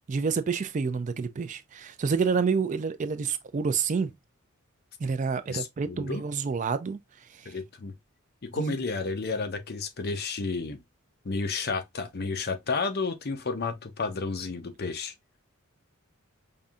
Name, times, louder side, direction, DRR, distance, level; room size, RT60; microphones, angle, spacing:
voice 1, 0.1-4.1 5.0-7.0 7.3-7.5 8.6-8.8, right 5 dB, 35° right, 0.3 m, -28 dB
voice 2, 5.5-6.2 7.5-7.9 8.4-10.8 11.2-15.1, left 4 dB, 45° left, 0.6 m, -31 dB
5.3 x 2.6 x 2.4 m
head